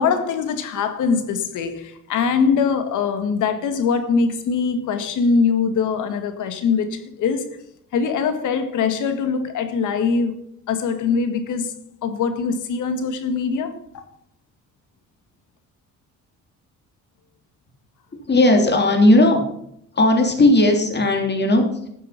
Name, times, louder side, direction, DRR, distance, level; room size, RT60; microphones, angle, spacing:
voice 1, 0.0-7.6 7.9-10.4 10.7-11.7 12.0-14.0, left 5 dB, 80° left, 1.9 m, -22 dB
voice 2, 18.1-19.4 19.9-21.9, left 1 dB, 35° left, 3.3 m, -16 dB
13.0 x 7.5 x 5.8 m
cardioid pair, 90°, 30 cm